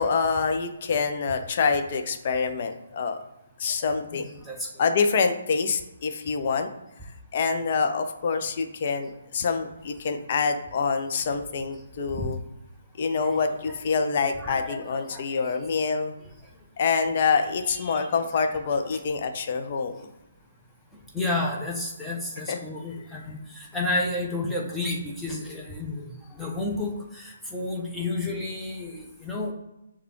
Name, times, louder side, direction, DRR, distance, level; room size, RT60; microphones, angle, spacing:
voice 1, 0.0-3.2 3.6-4.3 4.8-6.7 7.3-12.4 13.0-16.1 16.8-20.1 22.5-22.6, left 5 dB, 40° left, 6 dB, 0.5 m, -26 dB
voice 2, 4.1-4.8 12.1-12.2 13.2-13.4 13.7-13.8 14.4-15.5 17.7-18.1 21.1-29.5, left 2 dB, 5° left, -3 dB, 0.7 m, -31 dB
6.6 x 2.3 x 3.0 m, 0.93 s
figure-of-eight pair, 135°, 0 cm